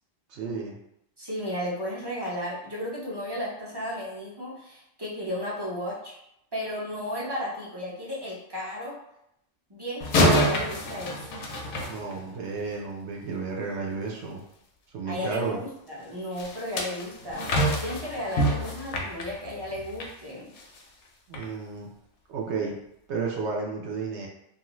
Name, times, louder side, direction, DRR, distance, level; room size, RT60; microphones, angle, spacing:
voice 1, 0.3-0.8 11.9-14.4 14.9-15.6 21.3-21.9 22.3-22.8 23.1-24.3, right 4 dB, 75° right, -1 dB, 0.9 m, -32 dB
voice 2, 1.2-6.2 6.5-9.0 9.7-11.2 15.1-17.5 17.8-20.5, equal, 30° right, -6 dB, 0.5 m, -34 dB
sound 1, 10.0-12.6 16.4-20.1 20.6-20.8 21.3-21.4, equal, 80° left, 0.9 m, -27 dB
2.6 x 2.4 x 3.0 m, 0.80 s
omnidirectional pair, 1.2 m